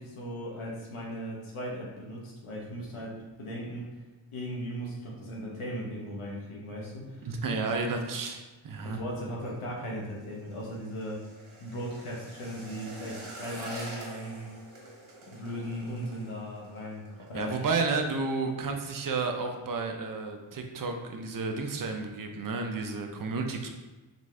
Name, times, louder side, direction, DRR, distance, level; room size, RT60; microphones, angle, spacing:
voice 1, 0.0-4.0 4.3-7.8 8.8-11.2 11.6-14.5 15.3-17.7, equal, 85° left, -3 dB, 1.1 m, -38 dB
voice 2, 7.2-9.0 17.3-23.7, right 4 dB, 45° right, 4 dB, 0.7 m, -32 dB
sound 1, 9.3-18.2 18.5-18.8 19.1-19.6 20.0-20.1, right 2 dB, 80° right, 1.4 m, -47 dB
3.9 x 3.6 x 3.2 m, 1.2 s
cardioid pair, 75°, 49 cm